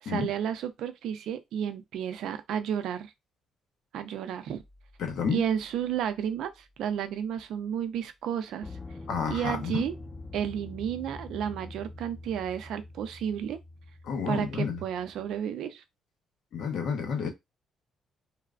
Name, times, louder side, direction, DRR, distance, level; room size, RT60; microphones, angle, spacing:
voice 1, 0.0-3.1 3.9-4.6 5.3-8.7 9.3-9.9 10.3-13.6 14.3-15.8, right 9 dB, 80° right, 0.4 m, -32 dB
sound 1, 4.6-4.8 8.6-15.4, left 2 dB, 25° left, 1.0 m, -45 dB
voice 2, 5.0-5.4 9.1-9.8 14.0-14.8 16.5-17.3, left 6 dB, 75° left, 0.8 m, -30 dB
3.1 x 2.0 x 2.4 m
cardioid pair, 90°, 0 cm